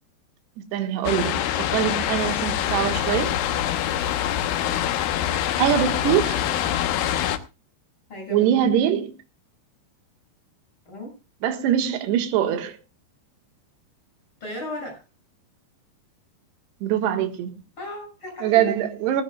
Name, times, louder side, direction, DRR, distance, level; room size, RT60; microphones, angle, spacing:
voice 1, 0.6-1.4 1.7-3.3 5.6-6.4 8.3-9.1 11.4-12.8 16.8-17.5 18.4-19.2, right 10 dB, 70° right, 3.5 m, -23 dB
sound 1, 1.0-7.4, left 11 dB, 75° left, 2.4 m, -25 dB
voice 2, 8.1-8.5 10.9-11.1 14.4-15.0 17.8-18.7, left 1 dB, 25° left, 7.3 m, -35 dB
19.0 x 15.5 x 2.3 m
omnidirectional pair, 5.2 m